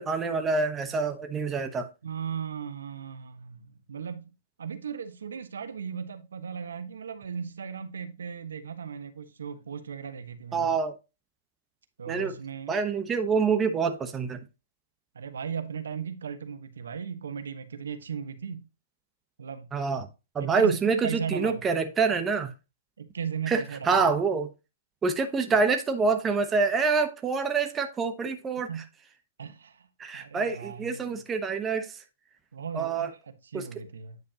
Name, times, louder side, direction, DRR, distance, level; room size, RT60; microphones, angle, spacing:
voice 1, 0.0-1.9 10.5-10.9 12.1-12.4 12.7-14.4 19.7-20.1 20.3-22.5 23.5-24.5 25.0-28.7 30.0-31.9 32.7-33.1 33.5-33.7, right 4 dB, 15° right, 1.0 m, -26 dB
voice 2, 2.0-4.3 4.6-10.7 12.0-12.8 15.1-18.7 19.4-19.7 20.4-20.8 21.0-21.6 23.0-24.0 28.7-28.9 29.4-29.9 30.1-31.2 32.5-34.2, right 7 dB, 80° right, 1.2 m, -37 dB
9.4 x 5.2 x 2.8 m
hypercardioid pair, 140°, 0 cm